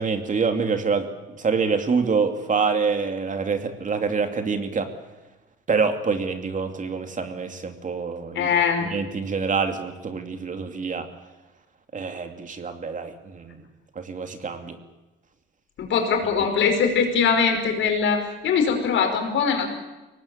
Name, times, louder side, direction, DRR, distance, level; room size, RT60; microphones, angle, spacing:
voice 1, 0.0-4.9 5.7-8.5 8.9-11.1 11.9-13.6 13.9-14.8, right 5 dB, 40° right, 7 dB, 2.8 m, -26 dB
voice 2, 8.3-8.9 15.8-19.7, left 6 dB, 75° left, 5 dB, 5.1 m, -22 dB
23.5 x 18.5 x 8.7 m, 1.1 s
cardioid pair, 90°, 20 cm